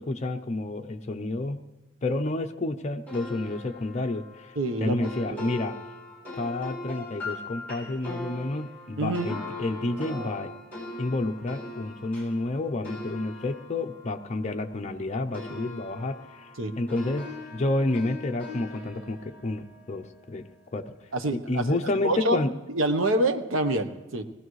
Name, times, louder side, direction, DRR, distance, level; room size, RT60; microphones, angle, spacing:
voice 1, 0.0-1.6 2.0-5.8 6.4-10.5 11.0-17.3 17.5-20.5 20.7-20.9 21.3-22.5, left 2 dB, 35° left, 4 dB, 0.6 m, -30 dB
sound 1, 3.1-15.0 15.3-20.6, left 2 dB, 10° left, 4.8 m, -41 dB
voice 2, 4.6-5.5 9.0-9.4 16.6-16.7 21.1-21.8 22.0-22.4 22.7-24.2, right 1 dB, 70° right, 8 dB, 1.0 m, -27 dB
20.5 x 15.5 x 3.2 m, 1.1 s
head